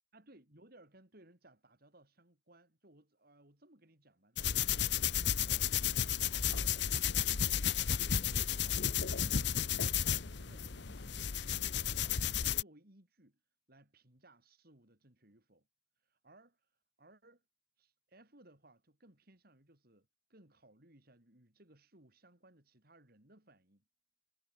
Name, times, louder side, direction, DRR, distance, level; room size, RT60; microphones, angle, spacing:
voice 1, 0.1-4.7 5.4-6.0 6.5-7.3 7.9-13.4 13.7-15.7 16.0-16.7 17.0-17.4 17.8-23.8, right 1 dB, 50° right, 4.2 m, -63 dB
sound 1, 4.4-12.6, left 9 dB, 60° left, 0.9 m, -33 dB
head